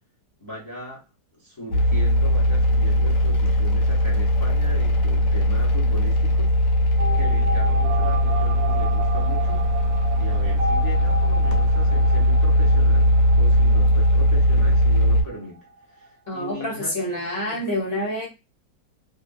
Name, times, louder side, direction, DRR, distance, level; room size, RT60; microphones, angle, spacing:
voice 1, 0.4-1.0 1.4-6.5 7.1-9.6 10.1-15.6 15.9-17.6, equal, 15° left, -3 dB, 0.8 m, -38 dB
sound 1, 1.7-15.2, equal, 85° left, 1.4 m, -19 dB
sound 2, 7.0-15.5 15.8-15.9 16.0-16.1, right 2 dB, 70° right, 0.9 m, -32 dB
voice 2, 16.3-18.3, equal, 40° left, -3 dB, 1.1 m, -27 dB
2.8 x 2.6 x 2.6 m, 0.26 s
omnidirectional pair, 1.9 m